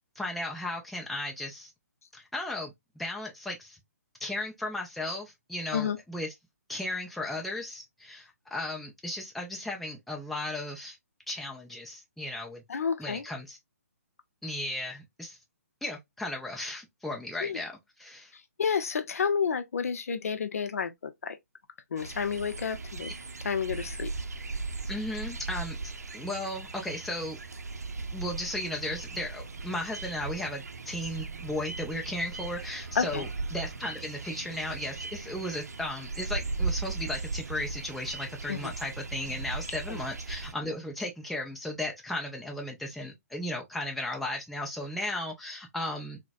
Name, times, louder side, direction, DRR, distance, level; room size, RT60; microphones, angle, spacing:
voice 1, 0.2-1.7 2.1-3.8 4.2-6.3 6.7-11.0 11.3-12.6 13.0-13.6 14.4-15.4 15.8-17.7 18.0-18.3 24.9-25.8 26.1-27.4 28.1-46.2, left 1 dB, ahead, 0.5 m, -35 dB
voice 2, 12.7-13.3 17.4-17.6 18.6-21.4 21.9-23.1 23.4-24.1 32.9-33.3 38.5-38.7 39.9-40.0, left 6 dB, 65° left, 0.6 m, -30 dB
sound 1, 22.0-40.5, right 3 dB, 75° right, 0.5 m, -38 dB
3.9 x 2.1 x 2.5 m
figure-of-eight pair, 135°, 9 cm